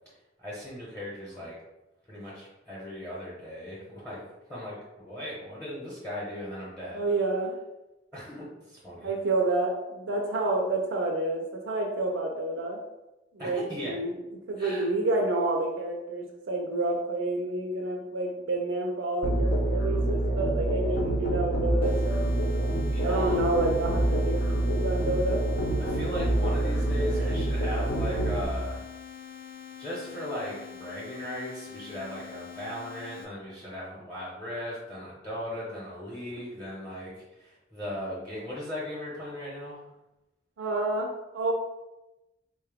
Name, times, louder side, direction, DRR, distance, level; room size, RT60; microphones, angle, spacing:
voice 1, 0.4-1.6 2.1-4.2 4.5-7.1 8.1-9.1 13.4-14.0 14.6-14.9 22.9-23.4 25.8-28.9 29.8-39.8, left 1 dB, 10° left, -8 dB, 0.9 m, -37 dB
voice 2, 6.9-7.5 9.0-12.8 13.3-14.2 14.5-22.3 23.0-25.4 27.1-27.2 40.6-41.5, right 2 dB, 75° right, 0 dB, 0.5 m, -29 dB
Musical instrument, 19.2-28.5, right 1 dB, 55° left, 0.8 m, -26 dB
sound 1, 21.8-33.2, left 8 dB, 10° right, 0.6 m, -45 dB
4.2 x 2.2 x 3.4 m, 0.98 s
head